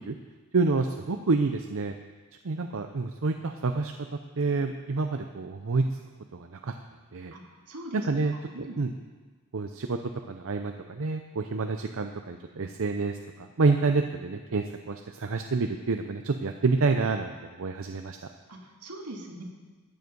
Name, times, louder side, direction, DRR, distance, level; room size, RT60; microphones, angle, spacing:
voice 1, 0.5-1.9 2.4-3.9 4.4-5.8 6.3-6.7 7.1-7.3 7.9-8.3 8.6-8.9 9.5-10.0 10.3-18.2, right 3 dB, 65° right, 6 dB, 0.6 m, -28 dB
voice 2, 7.3-8.1 8.5-8.8 18.5-19.4, right 1 dB, 80° right, 0 dB, 2.1 m, -41 dB
14.0 x 9.5 x 5.3 m, 1.4 s
head